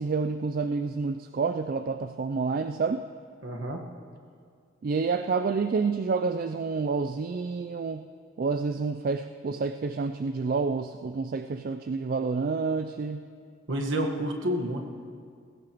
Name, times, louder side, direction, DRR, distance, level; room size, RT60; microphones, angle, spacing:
voice 1, 0.0-3.1 4.8-8.1 8.4-13.3, right 4 dB, 40° right, 9 dB, 0.3 m, -29 dB
voice 2, 3.4-3.8 13.7-14.8, right 1 dB, 60° right, 2 dB, 1.4 m, -29 dB
19.0 x 16.5 x 3.0 m, 2.2 s
head